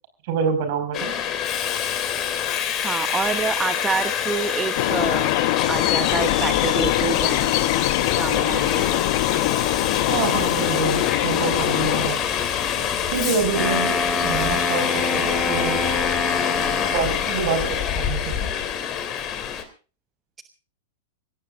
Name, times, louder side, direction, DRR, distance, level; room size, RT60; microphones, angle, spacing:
voice 1, 0.3-1.1 10.1-12.2 13.1-14.0 14.2-15.9 16.9-18.5, right 6 dB, 55° right, 8 dB, 5.6 m, -26 dB
Subway metro underground, 0.9-19.6, left 9 dB, 35° left, 3.1 m, -26 dB
voice 2, 2.8-5.3 5.7-7.5 8.1-9.1, right 5 dB, 20° right, 9 dB, 1.1 m, -27 dB
sound 1, 4.8-12.1, left 16 dB, 55° left, 0.9 m, -23 dB
Wind instrument woodwind instrument, 13.4-17.4, left 3 dB, 20° left, 3.9 m, -26 dB
25.5 x 17.0 x 2.6 m, 0.35 s
hypercardioid pair, 105°, 0 cm